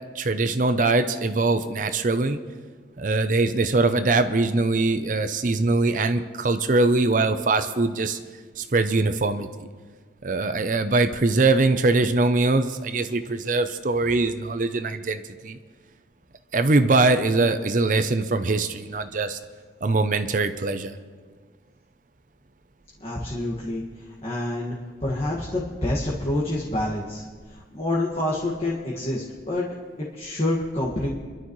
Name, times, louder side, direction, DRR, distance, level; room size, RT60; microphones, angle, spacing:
voice 1, 0.1-2.4 3.0-8.2 8.6-9.5 10.2-15.6 16.5-19.4 19.8-20.9, right 3 dB, 45° right, 9 dB, 0.6 m, -22 dB
voice 2, 23.0-23.8 24.2-24.8 25.0-27.2 27.7-31.1, left 1 dB, 35° left, -5 dB, 1.8 m, -27 dB
27.0 x 12.0 x 3.2 m, 1.5 s
head